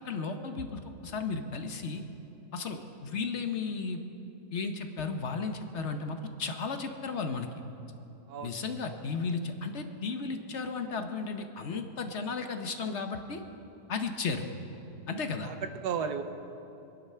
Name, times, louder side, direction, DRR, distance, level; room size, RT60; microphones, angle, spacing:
voice 1, 0.0-2.0 2.5-4.0 4.5-7.5 8.4-13.4 13.9-14.5 15.1-15.5, left 4 dB, 50° left, 6 dB, 1.1 m, -34 dB
voice 2, 15.4-16.2, right 7 dB, 75° right, 8 dB, 1.4 m, -34 dB
23.0 x 10.5 x 5.7 m, 2.9 s
omnidirectional pair, 1.8 m